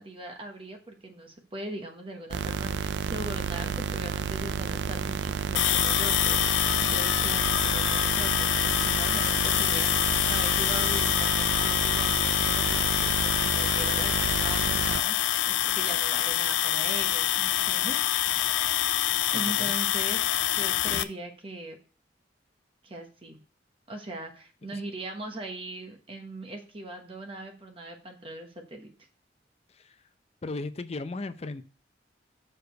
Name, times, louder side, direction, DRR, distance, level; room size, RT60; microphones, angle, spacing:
voice 1, 0.0-6.4 6.7-18.0 19.3-20.2 20.5-21.8 22.8-23.4 23.9-28.9, right 1 dB, 30° right, 3 dB, 1.0 m, -40 dB
sound 1, 2.3-15.0, right 6 dB, 70° right, 0.4 m, -31 dB
sound 2, 5.6-21.0, left 12 dB, 85° left, 0.5 m, -26 dB
voice 2, 19.3-19.7 24.7-24.8 29.8-29.9 30.4-31.6, left 2 dB, 35° left, 11 dB, 0.5 m, -36 dB
6.6 x 4.9 x 5.1 m, 0.37 s
head